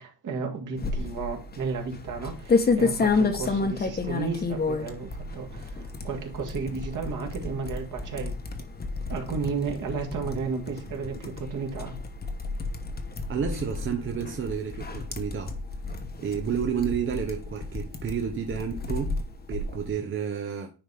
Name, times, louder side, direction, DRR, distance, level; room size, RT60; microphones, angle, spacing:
voice 1, 0.0-8.3 9.1-12.0, right 5 dB, 50° right, 2.1 m, -33 dB
sound 1, 0.8-19.9, left 4 dB, 25° left, 1.1 m, -31 dB
voice 2, 13.3-15.5 16.2-19.2 19.5-20.7, right 7 dB, 30° right, 0.8 m, -30 dB
10.0 x 4.1 x 3.5 m
cardioid pair, 115°, 39 cm